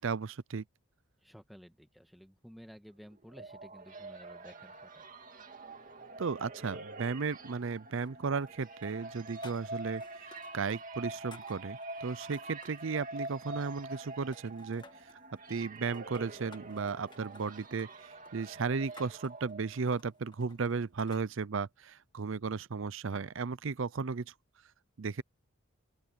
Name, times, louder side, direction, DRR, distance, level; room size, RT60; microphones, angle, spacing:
voice 1, 0.0-0.6 6.2-14.8 15.5-24.3 25.0-25.2, right 5 dB, 65° right, 0.6 m, -35 dB
voice 2, 1.2-5.1, equal, ahead, 2.1 m, -54 dB
sound 1, 3.0-20.0, right 2 dB, 40° right, 2.4 m, -46 dB
sound 2, 8.0-8.6 8.8-10.8 11.1-12.8 13.3-14.1 14.3-15.2 15.8-21.3, left 3 dB, 20° left, 1.7 m, -58 dB
open air
head